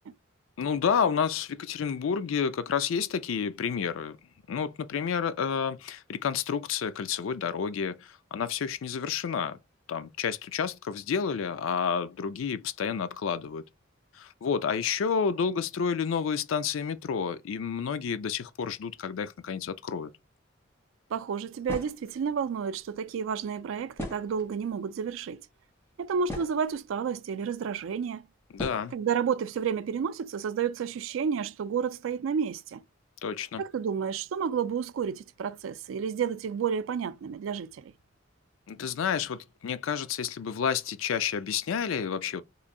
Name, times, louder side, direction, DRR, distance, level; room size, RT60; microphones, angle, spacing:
voice 1, 0.6-4.2 4.5-9.6 9.9-13.6 14.1-20.1 28.5-28.9 33.2-33.6 38.7-42.4, left 6 dB, 80° left, 0.4 m, -30 dB
voice 2, 21.1-25.4 26.0-28.3 28.9-32.8 33.6-37.9, right 7 dB, 80° right, 0.3 m, -31 dB
sound 1, 21.7-22.1 23.9-24.7 25.5-25.6 26.0-26.8 27.7-27.8 28.6-28.9, left 1 dB, 10° left, 1.1 m, -38 dB
3.1 x 2.6 x 3.6 m
head